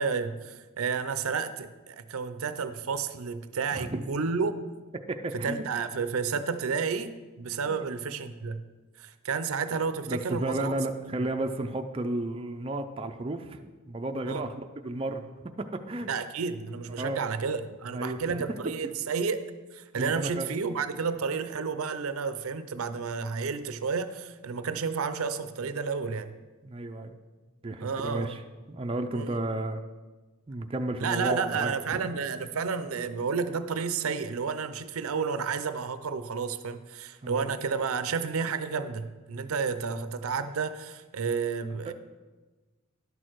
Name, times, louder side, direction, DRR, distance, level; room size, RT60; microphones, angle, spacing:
voice 1, 0.0-4.5 5.3-8.6 9.0-10.7 14.3-14.4 16.1-19.4 19.7-26.3 27.8-28.4 29.1-29.4 31.0-41.9, right 5 dB, 80° right, 11 dB, 0.5 m, -31 dB
voice 2, 3.7-4.1 5.1-5.7 7.7-7.9 10.1-14.5 14.8-15.3 15.9-16.1 17.0-17.2 17.9-18.6 19.9-20.5 26.6-27.2 27.6-28.4 28.7-29.8 30.5-32.1 37.2-37.5 41.9-42.0, right 2 dB, 25° right, 5 dB, 0.4 m, -33 dB
11.0 x 6.4 x 4.6 m, 1.2 s
head